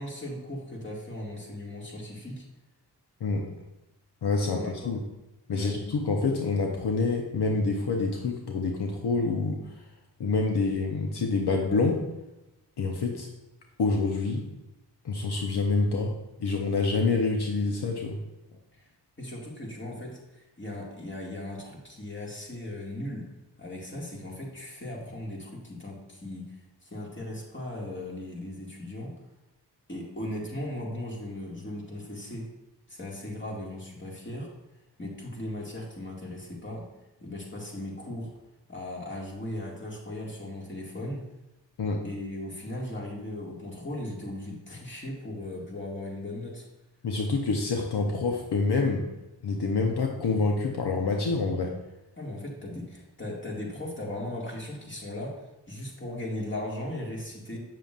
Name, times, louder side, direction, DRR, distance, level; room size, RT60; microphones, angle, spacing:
voice 1, 0.0-2.5 4.5-5.0 5.5-5.8 18.8-18.9 19.2-23.3 23.6-29.1 29.9-32.5 32.9-34.5 35.0-36.9 37.2-38.3 38.7-41.3 42.0-46.7 52.2-57.6, left 1 dB, 30° left, -2 dB, 2.1 m, -37 dB
voice 2, 4.2-5.0 5.5-9.6 10.2-12.0 12.8-13.3 13.8-14.4 15.0-16.1 16.4-18.2 41.8-42.0 47.0-49.1 49.4-51.7, left 3 dB, 75° left, 1 dB, 0.9 m, -27 dB
7.6 x 6.7 x 2.5 m, 0.96 s
cardioid pair, 60°, 41 cm